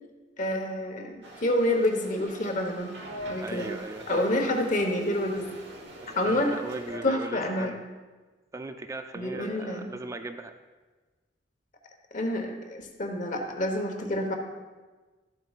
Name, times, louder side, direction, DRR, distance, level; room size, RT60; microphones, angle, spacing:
voice 1, 0.4-1.1 1.4-2.9 3.3-3.7 4.1-5.4 6.1-6.5 7.0-7.7 9.1-9.9 12.1-14.3, left 1 dB, 45° left, 3 dB, 1.1 m, -28 dB
sound 1, 1.2-7.0, equal, 70° right, 1.2 m, -42 dB
voice 2, 3.4-4.2 6.0-7.8 8.5-10.5 14.0-14.2, right 2 dB, 15° right, 7 dB, 0.3 m, -39 dB
13.0 x 7.8 x 2.4 m, 1.3 s
head